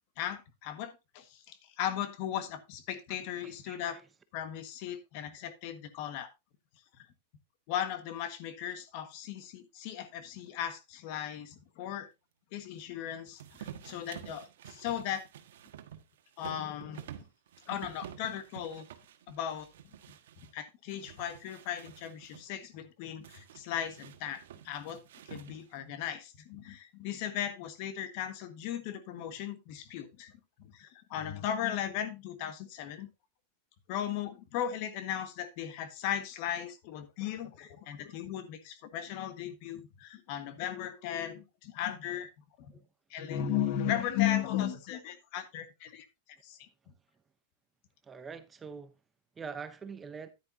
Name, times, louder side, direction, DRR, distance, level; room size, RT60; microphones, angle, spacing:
voice 1, 0.2-4.0 4.3-6.3 7.0-7.1 7.7-12.1 12.5-15.2 16.4-17.0 17.7-18.8 19.3-19.7 20.4-25.0 25.2-30.3 30.6-33.1 33.9-42.3 42.6-42.7 43.1-46.1 46.4-46.7, left 10 dB, 50° left, 1.5 m, -36 dB
voice 2, 3.4-4.1 42.7-42.9 48.0-48.9 49.4-50.3, right 5 dB, 15° right, 0.8 m, -44 dB
sound 1, 13.4-20.5 20.9-22.5 23.2-25.8, right 10 dB, 80° right, 1.3 m, -49 dB
10.5 x 9.9 x 2.7 m
supercardioid pair, 145°, 0 cm